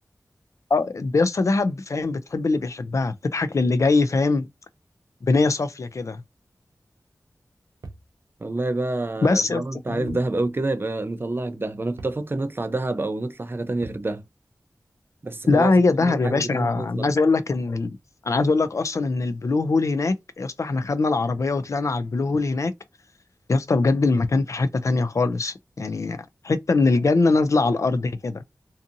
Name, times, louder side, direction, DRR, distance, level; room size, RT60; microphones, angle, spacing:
voice 1, 0.7-4.5 5.2-6.2 9.2-10.2 15.5-18.0 18.2-22.7 23.5-28.4, left 3 dB, 55° left, 0.3 m, -22 dB
sound 1, 7.8-8.1 10.1-10.3 10.7-10.8 12.0-12.3 13.8-14.1, right 3 dB, 90° right, 0.5 m, -41 dB
voice 2, 8.4-14.2 15.2-15.7 16.0-17.1, right 2 dB, 35° right, 0.4 m, -28 dB
2.6 x 2.5 x 2.5 m
wide cardioid pair, 55°, 6 cm